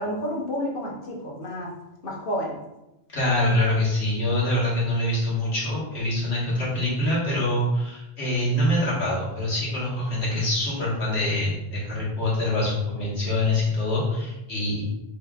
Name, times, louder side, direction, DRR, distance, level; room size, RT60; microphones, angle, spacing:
voice 1, 0.0-1.8 2.0-2.6, equal, 60° left, -1 dB, 1.0 m, -30 dB
voice 2, 3.1-14.8, left 1 dB, 90° left, -6 dB, 1.7 m, -25 dB
5.3 x 3.1 x 2.3 m, 0.93 s
omnidirectional pair, 1.1 m